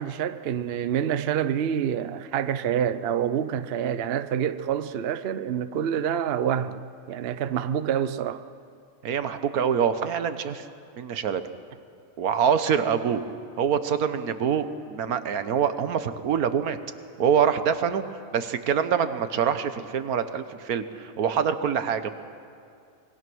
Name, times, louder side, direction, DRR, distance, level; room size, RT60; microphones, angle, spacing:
voice 1, 0.0-6.8 7.1-8.4, right 9 dB, 55° right, 0.8 m, -27 dB
voice 2, 9.0-10.6 11.0-11.4 12.2-13.2 13.6-16.8 17.2-18.0 18.3-22.3, right 7 dB, 85° right, 1.5 m, -25 dB
26.0 x 21.5 x 6.2 m
omnidirectional pair, 1.5 m